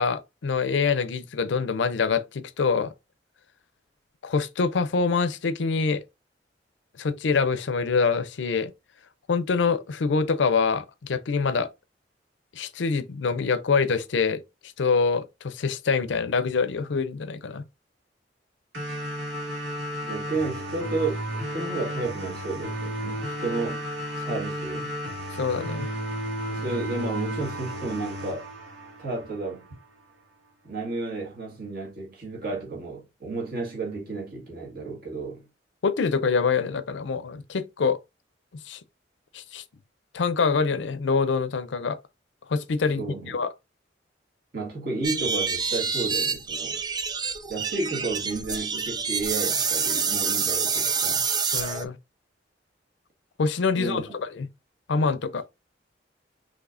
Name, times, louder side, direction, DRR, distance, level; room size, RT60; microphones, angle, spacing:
voice 1, 0.0-2.9 4.2-6.0 7.0-8.7 9.3-11.7 12.6-14.4 14.8-17.6 25.4-25.9 35.8-38.0 38.7-38.8 39.3-39.6 40.1-42.0 42.5-43.5 51.5-52.0 53.4-54.5 54.9-55.4, left 5 dB, 80° left, 0.5 m, -25 dB
sound 1, 18.7-29.7, equal, 90° right, 2.1 m, -33 dB
voice 2, 20.0-23.8 24.2-24.9 26.5-28.5 29.0-29.7 30.6-35.4 43.0-43.4 44.5-46.8 47.5-51.3 53.7-54.0, right 3 dB, 55° right, 1.8 m, -32 dB
sound 2, 45.0-51.9, right 5 dB, 20° right, 0.4 m, -27 dB
5.9 x 3.1 x 2.6 m
head